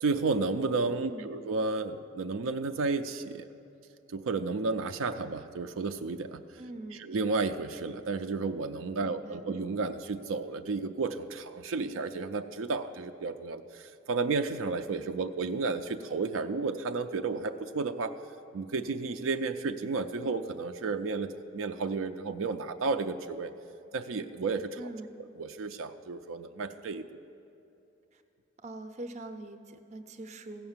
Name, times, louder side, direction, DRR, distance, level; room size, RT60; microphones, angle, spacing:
voice 1, 0.0-3.5 4.1-6.4 7.0-18.1 18.5-23.5 23.9-24.8 25.2-27.0, right 4 dB, 80° right, 7 dB, 0.4 m, -32 dB
voice 2, 1.0-1.4 6.6-7.1 9.0-9.5 24.8-25.2 28.1-28.2 28.6-30.7, right 2 dB, 35° right, 8 dB, 0.6 m, -43 dB
15.5 x 5.7 x 7.2 m, 2.8 s
head